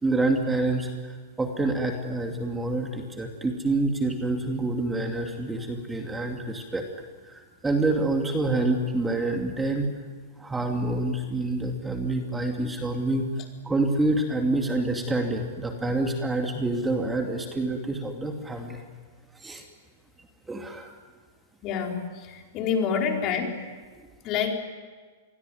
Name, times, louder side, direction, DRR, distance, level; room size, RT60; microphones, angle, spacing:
voice 1, 0.0-6.8 7.2-9.9 10.4-13.3 13.6-18.8 19.4-19.6 20.5-20.9, right 2 dB, 10° right, 3 dB, 2.6 m, -27 dB
voice 2, 21.6-23.6 24.2-24.5, left 6 dB, 35° left, 2 dB, 4.8 m, -27 dB
27.5 x 22.0 x 9.4 m, 1.5 s
hypercardioid pair, 140°, 0 cm